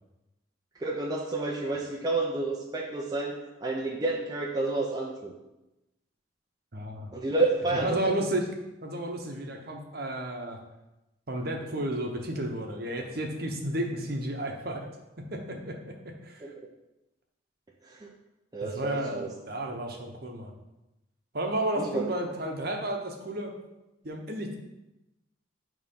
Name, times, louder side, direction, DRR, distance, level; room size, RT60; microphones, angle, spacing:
voice 1, 0.8-5.3 7.1-8.1 16.4-16.5 17.9-18.1 18.5-19.3 21.8-22.1, right 2 dB, 20° right, -2 dB, 0.6 m, -30 dB
voice 2, 6.7-7.1 7.7-8.5 8.8-10.6 11.3-14.9 15.2-16.4 18.6-20.5 21.3-23.5 24.0-24.6, right 1 dB, 50° right, 2 dB, 1.0 m, -32 dB
8.9 x 3.1 x 5.4 m, 0.97 s
head